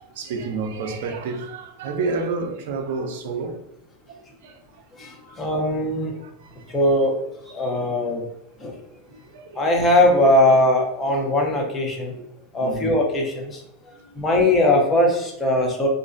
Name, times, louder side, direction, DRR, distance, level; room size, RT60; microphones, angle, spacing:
voice 1, 0.0-3.6 4.1-5.4 6.2-6.8 9.1-9.7 12.2-12.3 12.6-13.0 13.9-14.5 15.6-15.7, right 4 dB, 70° right, 0.4 m, -31 dB
voice 2, 4.9-6.2 6.7-7.2 7.5-8.3 8.6-8.8 9.5-12.1 12.5-15.9, left 1 dB, 25° left, 0.7 m, -20 dB
2.4 x 2.2 x 2.5 m
hypercardioid pair, 115°, 0 cm